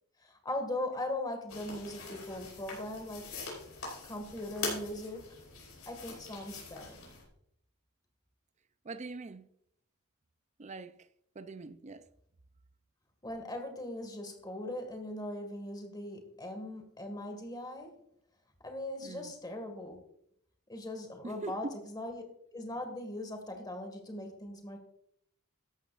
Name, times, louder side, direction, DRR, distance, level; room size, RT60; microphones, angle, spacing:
voice 1, 0.2-3.3 4.0-5.4 5.9-7.0 13.2-17.9 18.6-20.0 20.7-22.3 22.5-24.8, left 1 dB, 20° left, 1.9 m, -40 dB
sound 1, 1.5-7.2, left 4 dB, 70° left, 5.0 m, -43 dB
voice 2, 8.8-9.5 10.6-11.1 11.3-12.1 19.0-19.3 21.2-21.8, right 3 dB, 30° right, 0.5 m, -42 dB
13.5 x 11.0 x 2.5 m
head